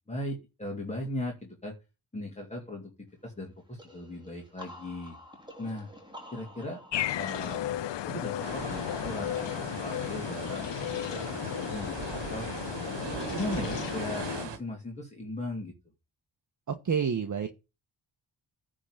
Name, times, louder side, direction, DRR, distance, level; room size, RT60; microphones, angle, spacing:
voice 1, 0.0-1.7 2.1-5.2 5.6-5.9 6.3-6.8 7.2-7.7 8.1-12.5 13.3-15.7, left 1 dB, 15° left, -1 dB, 2.7 m, -38 dB
sound 1, 3.8-9.3, left 1 dB, 10° right, 2.9 m, -50 dB
sound 2, 6.9-14.5, left 12 dB, 90° left, 0.7 m, -34 dB
sound 3, 8.4-14.6, right 7 dB, 90° right, 1.4 m, -39 dB
voice 2, 16.7-17.5, right 6 dB, 45° right, 7 dB, 1.2 m, -28 dB
9.9 x 3.9 x 6.4 m, 0.26 s
cardioid pair, 85°, 42 cm